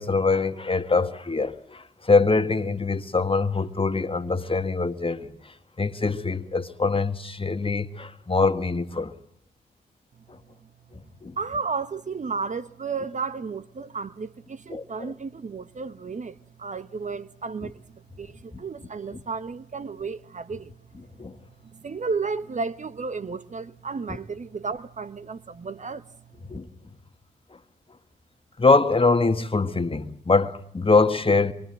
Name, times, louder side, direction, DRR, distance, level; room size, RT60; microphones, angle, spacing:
voice 1, 0.0-5.3 5.8-9.1 11.2-11.4 14.7-15.1 17.6-17.7 19.1-19.2 20.9-21.3 24.1-24.2 26.5-26.7 28.6-31.5, left 3 dB, 30° left, 1.6 m, -23 dB
voice 2, 11.4-17.8 18.2-20.7 21.7-26.0, right 4 dB, 40° right, 1.0 m, -33 dB
24.5 x 24.5 x 7.6 m
supercardioid pair, 40°, 19 cm